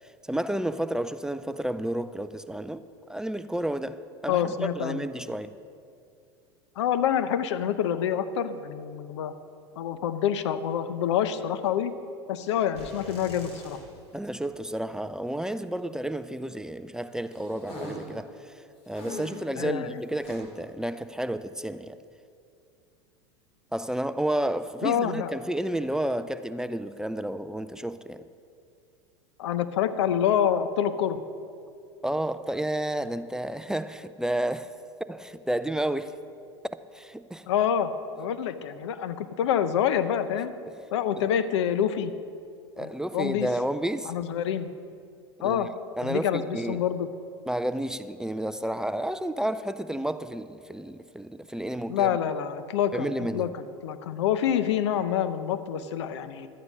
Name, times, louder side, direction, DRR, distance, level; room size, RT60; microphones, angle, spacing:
voice 1, 0.3-2.8 3.1-5.5 14.1-18.5 18.9-22.0 23.7-28.2 32.0-34.7 35.1-36.2 36.9-37.4 42.8-44.1 45.4-45.7 46.0-46.8 47.5-52.2 52.9-53.5, right 1 dB, 5° right, 0.4 m, -31 dB
voice 2, 4.3-5.0 6.8-9.3 9.8-11.9 12.3-13.8 19.6-20.0 24.8-25.3 29.4-31.2 37.5-37.9 38.2-40.5 40.9-42.1 42.8-43.5 44.1-44.7 45.4-45.7 46.0-47.1 51.9-56.5, left 9 dB, 80° left, 0.7 m, -27 dB
sound 1, 12.7-14.2 14.4-14.5 17.3-18.1 18.9-19.5 20.2-20.4, left 1 dB, 45° left, 3.7 m, -41 dB
12.5 x 9.5 x 5.5 m
hypercardioid pair, 100°, 15 cm